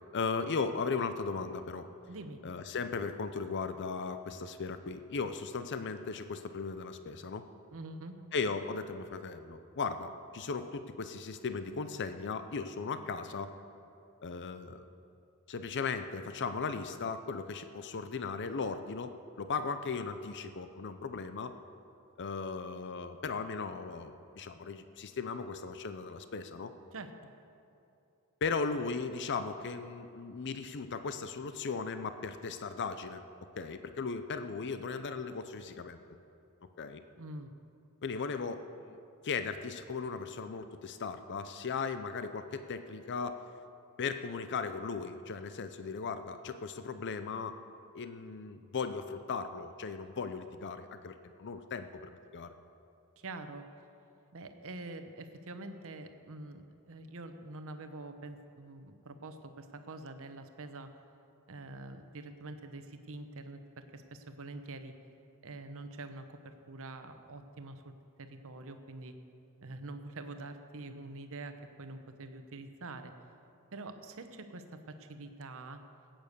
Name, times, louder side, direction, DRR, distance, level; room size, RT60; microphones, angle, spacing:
voice 1, 0.1-1.9 2.4-7.5 8.3-13.5 14.2-14.9 15.5-21.5 22.2-26.7 28.4-33.2 33.6-36.0 36.8-37.0 38.0-39.0 39.2-43.4 44.0-47.6 47.9-52.6, left 4 dB, 55° left, 10 dB, 0.6 m, -37 dB
voice 2, 2.1-2.4 7.7-8.2 26.9-27.1 37.2-37.5 53.2-53.6 54.3-60.9 61.5-64.9 65.4-67.9 68.2-69.2 69.6-73.1 73.7-75.8, right 2 dB, 65° right, 8 dB, 1.0 m, -45 dB
16.0 x 9.0 x 6.7 m, 2.7 s
head